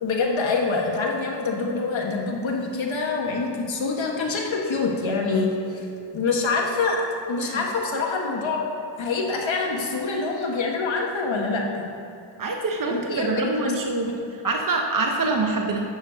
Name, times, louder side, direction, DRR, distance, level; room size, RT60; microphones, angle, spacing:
voice 1, 0.0-5.9 6.1-7.0 7.3-8.6 9.0-11.8 12.9-13.5 14.0-14.2, left 4 dB, 70° left, -1 dB, 1.3 m, -25 dB
voice 2, 12.4-14.1 14.4-15.9, right 3 dB, 45° right, 2 dB, 0.9 m, -25 dB
7.0 x 6.5 x 6.7 m, 2.6 s
wide cardioid pair, 75°, 47 cm